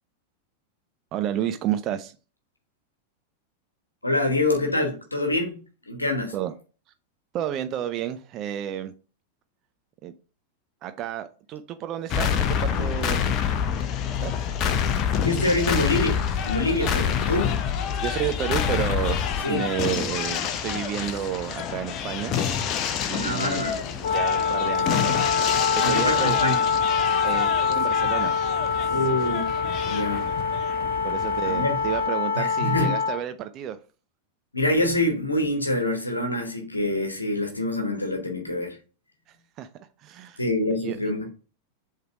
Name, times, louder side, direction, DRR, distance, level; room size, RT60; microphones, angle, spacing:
voice 1, 1.1-2.2 6.3-6.5 7.3-8.9 10.0-10.1 10.8-13.3 14.2-14.3 16.8-17.3 18.0-22.3 23.1-25.2 25.8-26.4 27.2-28.4 31.0-33.8 39.3-40.4 40.7-41.1, right 11 dB, 35° right, 0.5 m, -31 dB
voice 2, 4.0-5.6 5.9-6.3 15.2-17.6 19.4-19.6 23.1-23.8 25.8-26.6 28.9-29.5 29.8-30.3 31.4-31.8 32.3-33.0 34.5-38.8 40.4-41.3, left 1 dB, 80° left, 1.1 m, -25 dB
sound 1, 12.1-32.1, left 8 dB, 35° left, 0.7 m, -27 dB
Wind instrument woodwind instrument, 24.0-33.2, left 5 dB, 55° left, 1.0 m, -25 dB
7.7 x 3.3 x 4.5 m
figure-of-eight pair, 90°, 0 cm